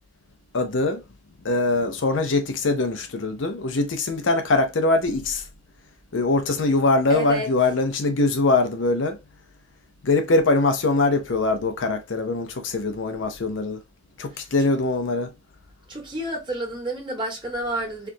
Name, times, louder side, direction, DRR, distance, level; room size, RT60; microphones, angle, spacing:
voice 1, 0.5-1.0 1.4-5.4 6.1-9.2 10.0-13.8 14.2-15.3, left 3 dB, 65° left, 0.7 m, -22 dB
voice 2, 7.1-7.5 14.3-14.7 15.9-18.1, right 1 dB, 25° right, 1.5 m, -30 dB
4.5 x 2.5 x 2.7 m
head